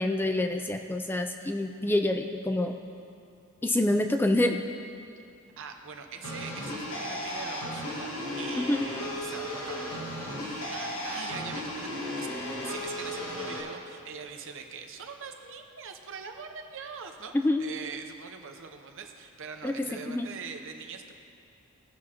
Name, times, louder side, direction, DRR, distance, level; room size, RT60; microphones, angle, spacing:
voice 1, 0.0-2.8 3.6-4.6 8.6-8.8 17.3-17.6 19.6-20.3, left 1 dB, 10° left, 5 dB, 0.3 m, -27 dB
voice 2, 5.6-8.1 8.4-17.3 17.6-21.1, right 5 dB, 60° right, 5 dB, 0.8 m, -43 dB
sound 1, 6.2-13.6, left 1 dB, 65° left, 1.5 m, -35 dB
17.5 x 6.2 x 2.9 m, 2.5 s
head